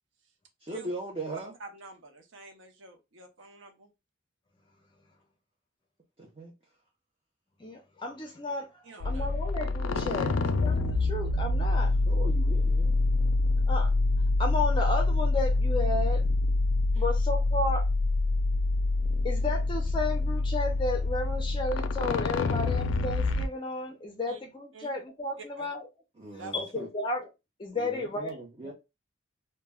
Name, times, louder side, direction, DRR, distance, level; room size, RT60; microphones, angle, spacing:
voice 1, 0.6-1.5 6.2-6.5 9.9-10.2 12.1-12.9 26.2-26.9 27.7-28.7, right 2 dB, 30° right, 0.5 m, -39 dB
voice 2, 1.6-3.9 8.8-9.3 16.9-17.1 24.3-24.4 24.7-24.9 25.4-25.7 26.4-26.5, right 3 dB, 75° right, 0.5 m, -47 dB
voice 3, 7.6-11.9 13.7-13.9 14.4-16.2 17.0-17.9 19.2-25.9 26.5-27.3 27.6-28.7, left 2 dB, 25° left, 0.4 m, -33 dB
sound 1, 9.0-23.5, left 2 dB, 85° left, 0.3 m, -26 dB
2.1 x 2.1 x 3.3 m
head